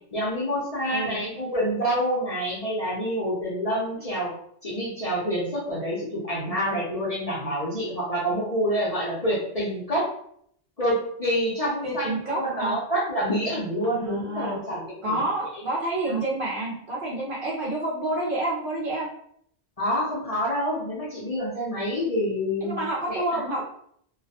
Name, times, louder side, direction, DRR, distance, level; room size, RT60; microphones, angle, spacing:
voice 1, 0.1-4.3 4.6-10.1 10.8-15.2 16.1-16.2 19.8-23.4, equal, 40° left, -7 dB, 0.6 m, -27 dB
voice 2, 0.9-1.2 11.8-12.7 13.8-14.6 15.0-19.1 22.6-23.6, right 2 dB, 60° right, -4 dB, 0.6 m, -29 dB
2.3 x 2.1 x 2.7 m, 0.67 s
omnidirectional pair, 1.2 m